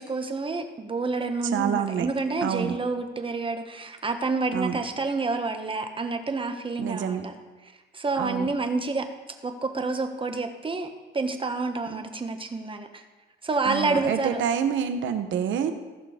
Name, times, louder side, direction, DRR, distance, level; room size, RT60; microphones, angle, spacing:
voice 1, 0.0-7.3 7.6-9.1 9.4-13.0 13.4-14.4, right 3 dB, 25° right, 6 dB, 1.3 m, -29 dB
voice 2, 1.5-2.1 2.4-2.8 4.5-4.8 6.8-7.3 8.2-8.5 11.9-12.0 13.6-15.7, right 8 dB, 75° right, 8 dB, 1.1 m, -27 dB
15.5 x 6.1 x 5.1 m, 1.2 s
cardioid pair, 90°, 20 cm